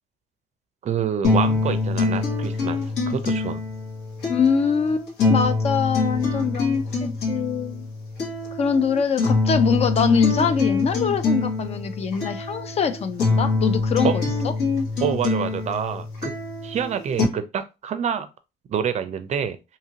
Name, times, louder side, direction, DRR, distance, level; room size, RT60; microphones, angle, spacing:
voice 1, 0.8-2.8 3.1-3.6 14.0-14.1 15.0-16.3 16.6-18.3 18.7-19.6, right 8 dB, 45° right, 0.4 m, -27 dB
sound 1, 1.2-17.2, left 3 dB, 75° left, 1.4 m, -25 dB
voice 2, 4.3-7.8 8.6-14.2, left 6 dB, 40° left, 0.4 m, -23 dB
2.7 x 2.5 x 2.8 m
cardioid pair, 110°, 17 cm